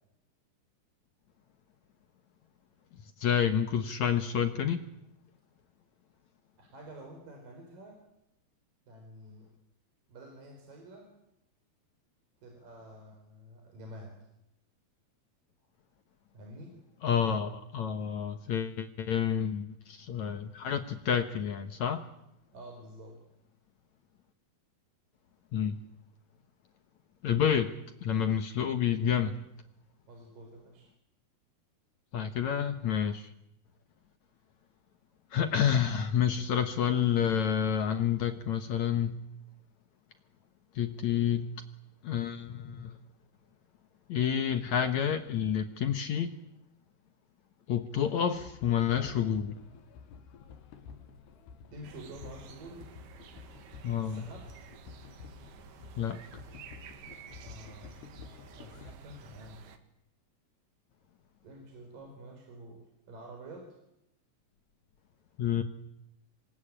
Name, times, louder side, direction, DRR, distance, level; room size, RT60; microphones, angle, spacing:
voice 1, 3.2-4.8 17.0-22.0 25.5-25.8 27.2-27.7 28.0-29.4 32.1-33.3 35.3-39.2 40.8-41.5 42.0-43.0 44.1-46.4 47.7-49.6 53.8-54.2 56.0-56.2 65.4-65.6, left 8 dB, 65° left, 8 dB, 2.0 m, -29 dB
voice 2, 6.6-8.0 8.9-9.5 10.1-11.1 12.4-14.2 16.3-16.8 22.5-23.1 30.1-30.9 51.7-52.9 54.0-54.4 57.4-58.0 58.6-59.6 61.4-62.8 63.1-63.7, right 1 dB, 55° right, 2 dB, 6.3 m, -48 dB
sound 1, 48.3-58.9, left 6 dB, 90° left, 4.0 m, -51 dB
sound 2, 51.8-59.8, right 7 dB, 75° right, 3.7 m, -52 dB
26.5 x 22.0 x 8.9 m, 0.84 s
omnidirectional pair, 4.6 m